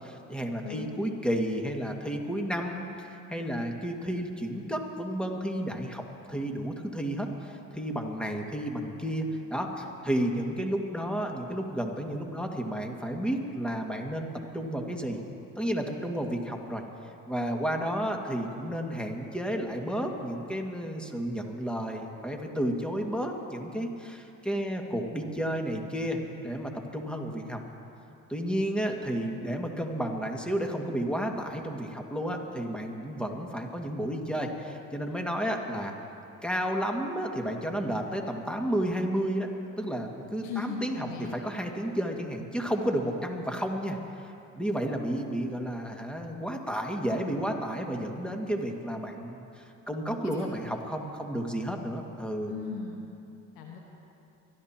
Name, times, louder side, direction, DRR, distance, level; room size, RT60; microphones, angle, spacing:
voice 1, 0.0-15.2 15.6-16.8 17.3-27.6 28.3-35.9 36.4-39.5 39.8-52.5, equal, 5° left, 2 dB, 2.0 m, -32 dB
voice 2, 40.4-41.3 50.2-50.3 52.5-53.1 53.5-53.8, left 5 dB, 85° left, 0 dB, 1.4 m, -37 dB
24.0 x 13.0 x 2.9 m, 2.7 s
hypercardioid pair, 60°, 37 cm